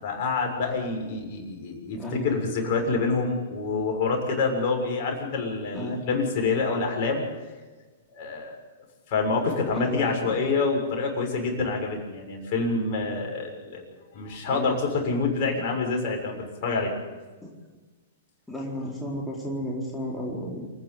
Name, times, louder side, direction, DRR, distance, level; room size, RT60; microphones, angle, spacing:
voice 1, 0.0-7.2 8.1-8.6 9.1-13.8 14.1-16.4 16.6-16.9, left 4 dB, 50° left, 0 dB, 6.9 m, -27 dB
voice 2, 1.9-2.3 5.7-6.0 9.7-10.4 14.4-14.8 17.4-17.5 18.5-20.7, equal, 5° left, -4 dB, 4.3 m, -33 dB
28.0 x 10.5 x 9.6 m, 1.3 s
hypercardioid pair, 120°, 0 cm